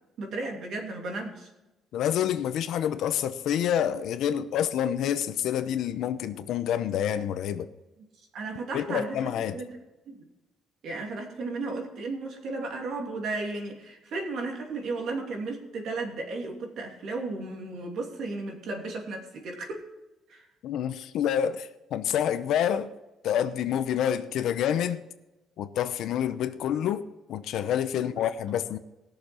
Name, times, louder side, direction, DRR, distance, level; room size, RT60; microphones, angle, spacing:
voice 1, 0.2-1.5 8.3-9.2 9.5-9.8 10.1-10.3 10.8-19.8 20.3-20.4 27.9-28.2, right 3 dB, 55° right, 2.9 m, -34 dB
voice 2, 1.9-7.7 8.7-9.6 20.6-22.9 23.2-25.0 25.6-28.8, left 9 dB, 65° left, 0.8 m, -28 dB
19.5 x 6.9 x 4.5 m
cardioid pair, 165°, 0 cm